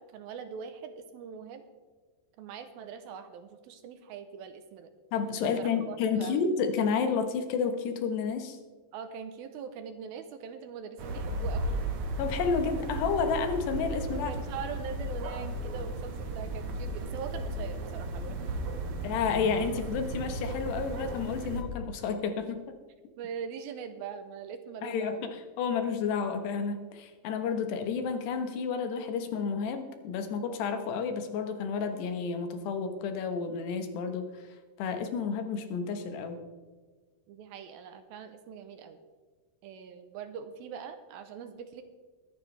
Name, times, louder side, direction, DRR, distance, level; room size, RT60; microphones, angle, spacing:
voice 1, 0.0-1.7 2.4-4.9 5.6-6.4 8.9-11.8 14.1-18.4 18.9-19.0 23.2-25.3 37.3-39.0 39.6-41.8, right 7 dB, 75° right, 8 dB, 2.4 m, -42 dB
voice 2, 5.1-8.6 12.2-14.3 19.0-22.6 24.8-34.5 34.8-36.4, left 5 dB, 85° left, 7 dB, 3.4 m, -31 dB
sound 1, 11.0-21.6, right 1 dB, 60° right, 2.3 m, -35 dB
22.5 x 9.3 x 3.3 m, 1.4 s
omnidirectional pair, 4.7 m